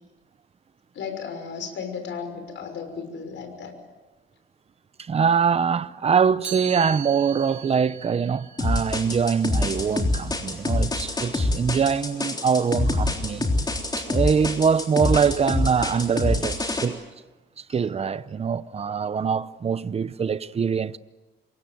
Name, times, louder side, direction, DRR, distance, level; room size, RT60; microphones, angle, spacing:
voice 1, 0.9-3.7 14.4-14.5, left 6 dB, 70° left, 6.0 m, -34 dB
voice 2, 5.1-13.5 14.0-17.0 17.7-21.0, right 6 dB, 30° right, 0.7 m, -23 dB
Chime, 6.4-12.3, right 9 dB, 55° right, 6.4 m, -42 dB
sound 1, 8.6-16.9, left 2 dB, 20° left, 3.5 m, -25 dB
27.5 x 23.0 x 7.8 m
cardioid pair, 140°, 20 cm